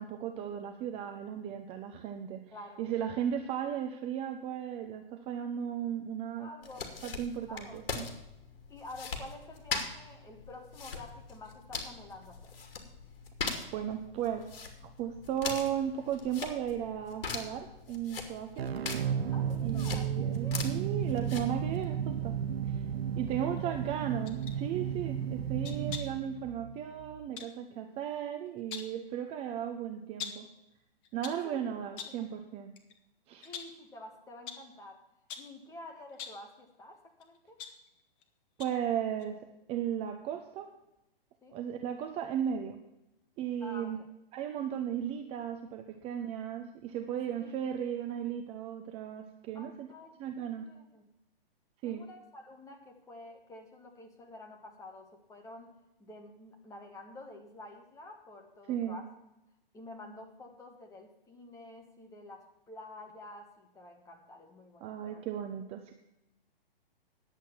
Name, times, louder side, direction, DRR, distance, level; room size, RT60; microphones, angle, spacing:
voice 1, 0.0-2.4 2.8-6.5 7.0-8.1 13.7-14.6 15.0-18.7 19.6-22.4 22.7-22.8 23.2-30.5 31.1-32.8 33.3-33.5 38.6-40.7 41.5-42.8 43.4-44.0 44.3-49.9 50.2-50.7 51.8-52.1 58.7-59.0 64.8-65.9, right 9 dB, 20° right, 6 dB, 0.7 m, -36 dB
voice 2, 2.5-2.9 6.4-6.9 7.5-7.8 8.7-12.5 19.3-20.8 23.5-23.8 27.7-27.9 31.4-31.7 32.0-32.2 33.4-35.0 35.4-37.7 41.4-41.6 43.6-44.1 47.4-47.6 49.5-51.1 51.8-59.1 59.7-65.2, left 2 dB, 10° left, 2 dB, 1.7 m, -49 dB
sound 1, 6.6-21.8, left 5 dB, 70° left, 2.7 m, -41 dB
sound 2, 18.6-27.3, right 8 dB, 90° right, 0.5 m, -33 dB
sound 3, 24.3-24.6 25.6-26.2 27.4-27.6 28.5-29.0 30.2-30.5 31.0-31.5 32.0-32.3 32.8-32.9 33.4-33.8 34.5-34.7 35.3-35.6 36.1-36.5 37.2-38.2 38.6-38.9 39.2-39.3, left 7 dB, 35° left, 1.5 m, -44 dB
10.5 x 8.1 x 7.1 m, 0.89 s
hypercardioid pair, 135°, 30 cm